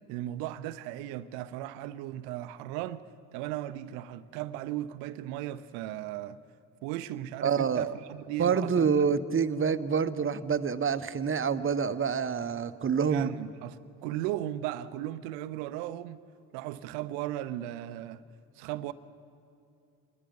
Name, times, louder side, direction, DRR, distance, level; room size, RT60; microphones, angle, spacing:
voice 1, 0.1-3.0 3.3-6.4 6.8-9.1 12.9-16.2 16.5-18.2 18.6-18.9, right 13 dB, 80° right, 0.8 m, -36 dB
voice 2, 7.4-7.9 8.4-13.3, right 6 dB, 30° right, 1.0 m, -27 dB
27.0 x 20.0 x 5.4 m
hypercardioid pair, 50°, 40 cm